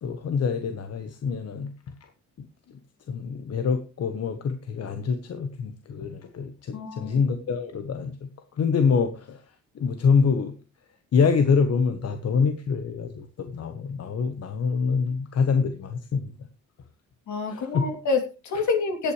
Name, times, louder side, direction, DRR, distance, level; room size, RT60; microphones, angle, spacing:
voice 1, 0.0-1.7 2.4-2.5 3.1-8.3 8.6-9.4 9.7-10.5 11.1-16.3 17.5-17.9, left 5 dB, 55° left, 8 dB, 1.3 m, -25 dB
voice 2, 6.7-7.2 17.3-19.1, left 4 dB, 70° left, 4 dB, 2.9 m, -27 dB
17.0 x 8.7 x 3.2 m, 0.31 s
cardioid pair, 90°, 30 cm